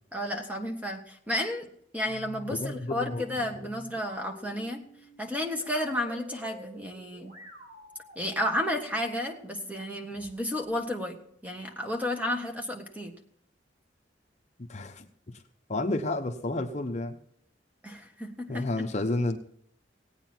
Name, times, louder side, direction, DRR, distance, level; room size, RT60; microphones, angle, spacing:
voice 1, 0.1-1.7 1.9-4.8 5.2-7.3 8.1-13.1 17.8-18.9, left 1 dB, 10° right, 3 dB, 1.5 m, -32 dB
sound 1, 2.0-10.6, left 1 dB, 40° right, 6.5 m, -49 dB
voice 2, 2.6-3.5 14.6-15.1 15.7-17.2 18.5-19.4, left 2 dB, 40° left, 4 dB, 0.9 m, -31 dB
18.0 x 9.1 x 4.4 m, 0.69 s
head